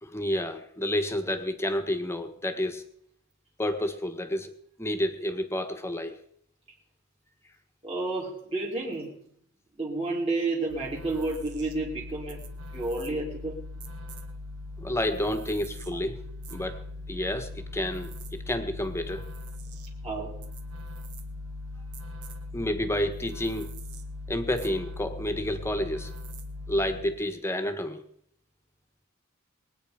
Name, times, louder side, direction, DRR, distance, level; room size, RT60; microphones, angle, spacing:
voice 1, 0.0-2.8 3.6-4.5 4.8-6.1 14.8-16.2 16.5-16.8 17.1-19.3 22.5-23.7 24.3-26.1 26.7-28.0, left 1 dB, 10° left, 7 dB, 1.5 m, -30 dB
voice 2, 7.8-9.2 9.8-13.7 15.9-16.0 20.0-20.4, right 2 dB, 25° right, -5 dB, 2.8 m, -31 dB
sound 1, 10.7-27.3, left 2 dB, 80° right, 2.0 m, -40 dB
22.5 x 9.2 x 5.1 m, 0.68 s
head